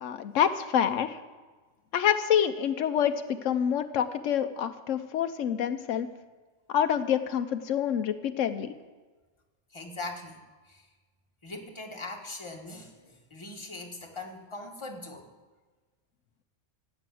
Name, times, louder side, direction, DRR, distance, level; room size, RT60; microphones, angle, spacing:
voice 1, 0.0-1.2 1.9-6.1 6.7-8.7, left 9 dB, 85° left, 9 dB, 1.1 m, -27 dB
voice 2, 9.7-10.9 11.4-15.3, left 2 dB, 25° left, 1 dB, 1.8 m, -41 dB
15.5 x 9.3 x 7.7 m, 1.3 s
omnidirectional pair, 1.3 m